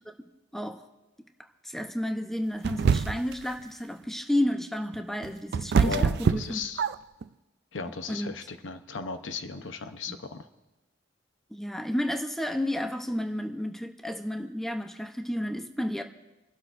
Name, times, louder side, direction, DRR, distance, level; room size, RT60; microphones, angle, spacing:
voice 1, 1.4-6.6 8.1-8.3 10.1-10.2 11.5-16.0, left 1 dB, ahead, 5 dB, 0.7 m, -31 dB
sound 1, 2.6-3.4 4.9-7.2, right 6 dB, 60° right, 0.3 m, -25 dB
voice 2, 5.8-6.8 7.7-10.5, left 5 dB, 80° left, 9 dB, 0.8 m, -36 dB
28.5 x 12.0 x 2.6 m, 1.0 s
head